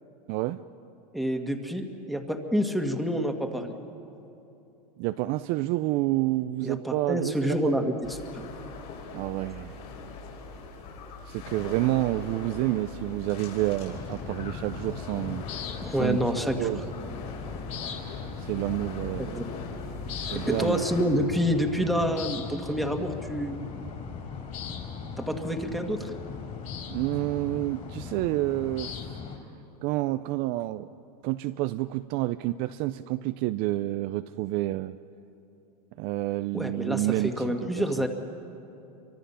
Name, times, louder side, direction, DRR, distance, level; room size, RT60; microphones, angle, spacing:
voice 1, 0.3-0.6 5.0-7.9 9.1-9.8 11.3-15.4 15.9-16.2 16.6-16.8 18.4-19.4 20.3-20.8 26.9-29.0 29.8-30.9 31.2-34.9 36.0-38.1, right 17 dB, 45° right, 11 dB, 0.5 m, -29 dB
voice 2, 1.1-3.7 6.6-8.4 15.8-16.8 19.2-19.5 20.5-23.6 25.2-26.1 36.5-38.1, equal, ahead, 3 dB, 1.8 m, -28 dB
sound 1, 8.0-21.0, left 4 dB, 65° left, 6.8 m, -41 dB
sound 2, 13.9-29.4, left 6 dB, 35° left, 4.0 m, -38 dB
29.5 x 24.5 x 5.7 m, 2.9 s
supercardioid pair, 125°, 21 cm